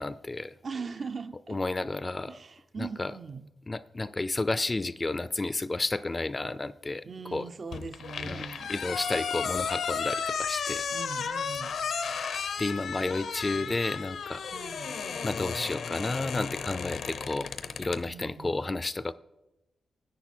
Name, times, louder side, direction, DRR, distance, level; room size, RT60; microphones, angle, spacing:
voice 1, 0.0-0.5 1.5-2.4 2.8-3.1 3.7-7.0 7.3-7.5 8.2-10.9 12.6-14.4 15.2-17.5 17.8-19.1, left 2 dB, 25° left, 0.3 m, -31 dB
voice 2, 0.6-1.6 2.3-3.5 7.0-8.7 10.9-11.7 13.2-13.8 14.5-15.0 18.0-18.6, right 5 dB, 50° right, 0.4 m, -41 dB
sound 1, 7.7-18.0, left 6 dB, 80° left, 0.7 m, -34 dB
10.5 x 9.5 x 4.3 m
cardioid pair, 85°, 0 cm